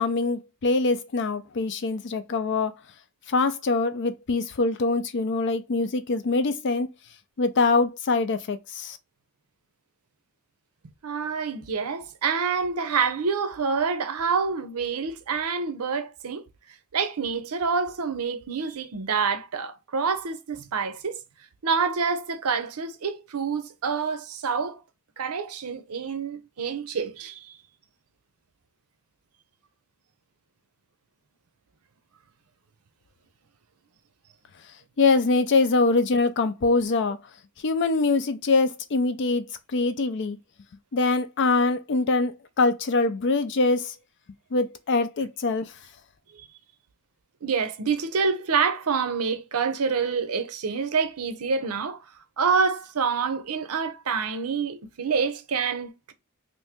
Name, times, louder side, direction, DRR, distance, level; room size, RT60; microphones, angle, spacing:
voice 1, 0.0-2.7 3.3-6.9 7.4-9.0 35.0-37.2 37.6-39.5 39.7-40.4 40.9-43.9 44.5-45.7, left 3 dB, 55° left, 0.5 m, -23 dB
voice 2, 11.0-16.4 16.9-21.2 21.6-24.8 25.2-27.5 46.3-46.5 47.4-52.0 52.4-56.1, right 5 dB, 85° right, 0.7 m, -27 dB
2.9 x 2.6 x 3.5 m
head